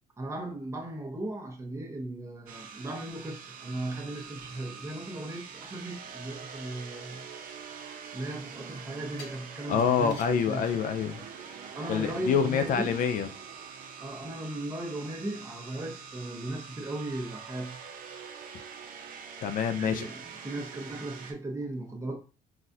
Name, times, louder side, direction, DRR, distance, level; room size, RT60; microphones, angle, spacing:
voice 1, 0.2-7.3 8.1-10.7 11.7-13.0 14.0-17.8 19.7-22.2, right 1 dB, 15° right, 0.9 m, -37 dB
sound 1, 2.5-21.3, right 6 dB, 55° right, 0.7 m, -45 dB
sound 2, 7.2-8.3 9.2-11.5 11.9-12.0, left 3 dB, 80° left, 0.9 m, -52 dB
voice 2, 9.7-11.3 11.9-13.3 19.4-20.1, left 7 dB, 55° left, 0.4 m, -26 dB
4.0 x 2.3 x 2.7 m
cardioid pair, 110°, 17 cm